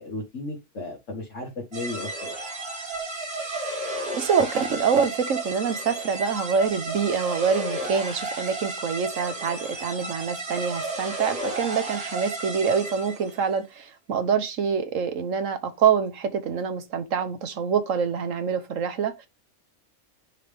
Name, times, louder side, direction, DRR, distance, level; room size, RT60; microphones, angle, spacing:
voice 1, 0.0-2.3, left 2 dB, 70° left, 2.0 m, -35 dB
sound 1, 1.7-13.4, right 2 dB, 50° right, 2.2 m, -33 dB
voice 2, 4.1-19.3, right 6 dB, 85° right, 1.4 m, -25 dB
9.9 x 3.4 x 3.4 m
omnidirectional pair, 1.3 m